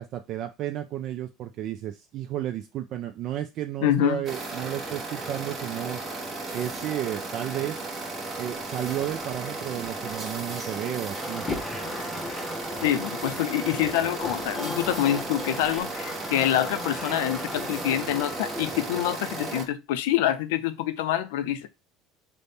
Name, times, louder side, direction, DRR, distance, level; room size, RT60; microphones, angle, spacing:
voice 1, 0.0-6.0 6.5-7.8 8.4-11.4, right 12 dB, 50° right, 0.3 m, -32 dB
voice 2, 3.8-4.2 12.8-21.7, left 12 dB, 90° left, 0.4 m, -26 dB
sound 1, 4.2-19.6, right 2 dB, 25° right, 0.8 m, -35 dB
sound 2, 11.1-19.0, left 2 dB, 15° left, 0.6 m, -37 dB
4.1 x 2.1 x 3.4 m
cardioid pair, 140°, 0 cm